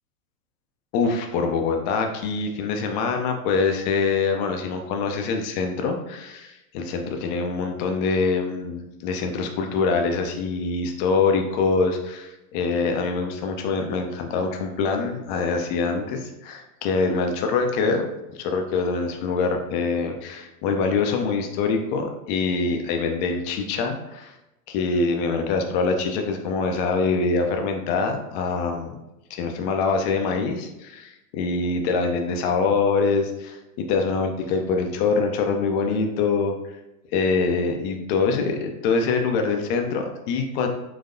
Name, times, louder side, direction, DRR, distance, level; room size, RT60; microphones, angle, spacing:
voice 1, 0.9-18.0 18.4-24.3 24.7-29.0 29.3-36.5 37.1-40.7, left 4 dB, 35° left, 4 dB, 0.4 m, -24 dB
3.9 x 2.6 x 2.6 m, 0.94 s
hypercardioid pair, 110°, 43 cm